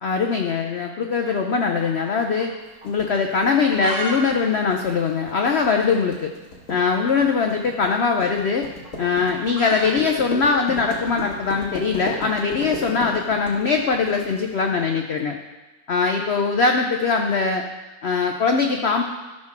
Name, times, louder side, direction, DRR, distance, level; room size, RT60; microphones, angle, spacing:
voice 1, 0.0-2.5 2.8-6.3 6.7-8.7 9.0-15.4 15.9-17.6 18.0-19.0, left 5 dB, 75° left, 3 dB, 0.5 m, -21 dB
sound 1, 1.2-2.6 2.8-2.9 3.4-4.2 4.4-4.5 4.8-4.9 5.4-5.6 6.7-6.9 8.0-12.3, right 1 dB, 80° right, 2.7 m, -35 dB
sound 2, 2.9-14.4, left 2 dB, 50° left, 1.9 m, -35 dB
12.5 x 4.3 x 5.9 m, 1.2 s
omnidirectional pair, 1.9 m